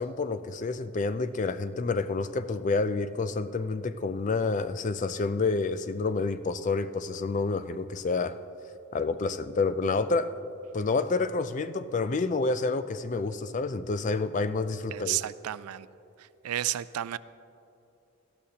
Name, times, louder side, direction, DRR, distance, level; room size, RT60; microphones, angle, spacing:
voice 1, 0.0-8.4 8.9-10.3 10.7-15.2, left 3 dB, 35° left, 12 dB, 0.3 m, -29 dB
voice 2, 14.9-15.9 16.2-17.2, right 13 dB, 85° right, 17 dB, 0.3 m, -32 dB
18.5 x 12.5 x 2.9 m, 2.7 s
head